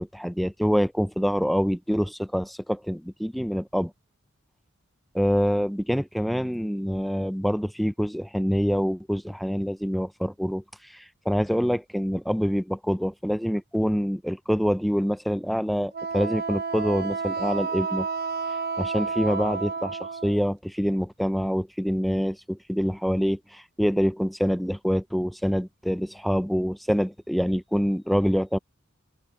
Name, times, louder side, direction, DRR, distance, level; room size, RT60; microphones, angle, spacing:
voice 1, 0.0-3.9 5.1-18.1 18.8-28.6, equal, ahead, 0.5 m, -26 dB
Wind instrument woodwind instrument, 15.9-20.4, right 5 dB, 50° right, 1.1 m, -30 dB
head